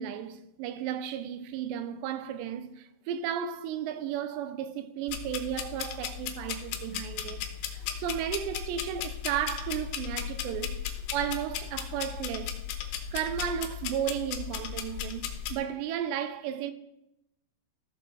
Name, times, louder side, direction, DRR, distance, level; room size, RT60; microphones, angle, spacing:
voice 1, 0.0-10.8 11.1-12.6 13.1-16.7, right 9 dB, 80° right, 2.6 m, -34 dB
sound 1, 5.1-15.6, left 9 dB, 75° left, 2.7 m, -36 dB
14.0 x 6.5 x 3.8 m
omnidirectional pair, 5.4 m